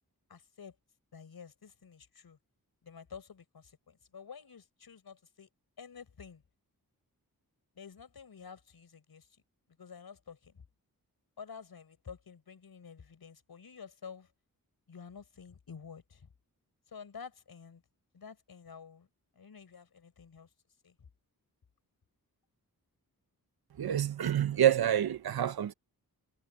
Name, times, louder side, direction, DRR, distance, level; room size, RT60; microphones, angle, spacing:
voice 1, 0.3-0.8 1.1-2.4 2.8-5.5 5.8-6.4 7.7-9.3 9.8-10.6 11.4-14.3 14.9-16.3 16.9-17.8 18.1-19.1 19.3-20.5 20.8-20.9, left 6 dB, 80° left, 5.0 m, -50 dB
voice 2, 23.8-25.7, right 11 dB, 90° right, 0.8 m, -27 dB
wide cardioid pair, 120°, 36 cm